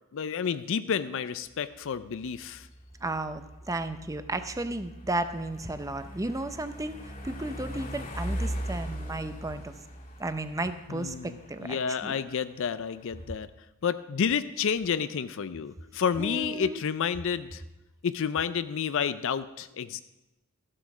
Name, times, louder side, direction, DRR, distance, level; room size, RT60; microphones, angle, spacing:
voice 1, 0.1-2.7 10.9-13.5 13.8-17.6 18.0-20.0, left 7 dB, 65° left, 13 dB, 0.4 m, -30 dB
sound 1, 1.5-13.2, equal, 35° left, 1.9 m, -40 dB
voice 2, 3.0-9.7 10.2-12.2 16.2-16.8, right 2 dB, 15° right, 10 dB, 0.6 m, -34 dB
13.5 x 7.6 x 6.0 m, 0.99 s
head